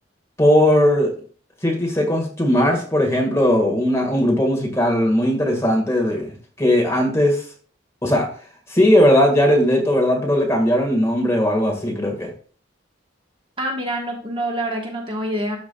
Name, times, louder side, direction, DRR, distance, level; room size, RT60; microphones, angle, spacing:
voice 1, 0.4-1.1 1.6-7.4 8.0-8.3 8.7-12.3, equal, 15° left, 1 dB, 1.7 m, -18 dB
voice 2, 13.6-15.6, right 1 dB, 25° right, 0 dB, 1.4 m, -26 dB
12.0 x 4.7 x 2.3 m, 0.42 s
head